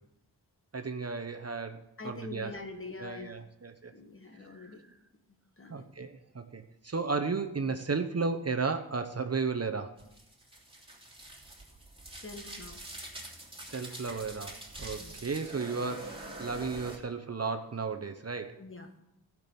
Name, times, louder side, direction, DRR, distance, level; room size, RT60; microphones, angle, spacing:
voice 1, 0.7-2.5 3.0-3.9 4.5-4.7 5.7-10.0 13.6-18.6, right 4 dB, 40° right, 6 dB, 0.8 m, -34 dB
voice 2, 2.0-3.5 3.9-4.9 5.6-5.8 12.1-12.8 15.0-15.1 18.6-19.0, left 3 dB, 30° left, 5 dB, 1.6 m, -44 dB
sound 1, 10.0-17.0, right 1 dB, 15° right, 3.0 m, -45 dB
15.5 x 6.1 x 7.0 m, 0.86 s
wide cardioid pair, 95°, 39 cm